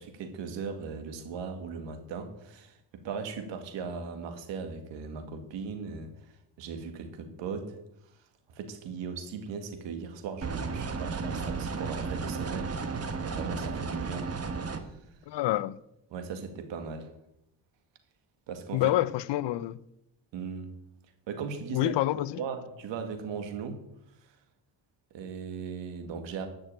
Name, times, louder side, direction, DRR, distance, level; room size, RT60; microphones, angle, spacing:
voice 1, 0.0-7.8 8.5-14.3 14.7-15.0 16.1-17.1 18.5-18.9 20.3-20.7 21.3-21.9 22.4-23.8 25.1-26.5, right 5 dB, 85° right, 2.0 m, -38 dB
sound 1, 10.4-14.8, right 4 dB, 35° right, 1.6 m, -33 dB
voice 2, 15.3-15.7 18.7-19.8 21.7-22.4, left 15 dB, 70° left, 0.7 m, -27 dB
11.5 x 6.3 x 9.0 m
cardioid pair, 85°, 43 cm